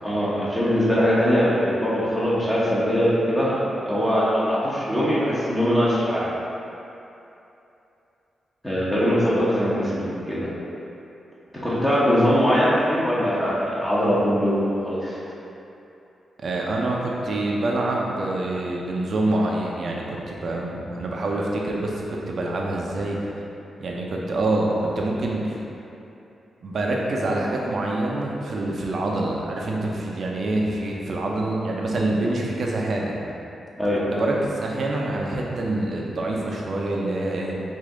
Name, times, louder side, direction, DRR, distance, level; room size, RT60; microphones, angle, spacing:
voice 1, 0.0-3.5 3.8-6.3 8.6-10.5 11.6-15.2 33.8-34.1, equal, 15° left, -10 dB, 1.0 m, -21 dB
voice 2, 16.4-23.2 23.8-25.6 26.6-33.2 34.1-37.5, right 2 dB, 60° right, -2 dB, 0.7 m, -26 dB
5.0 x 2.7 x 3.8 m, 2.8 s
cardioid pair, 85°, 0 cm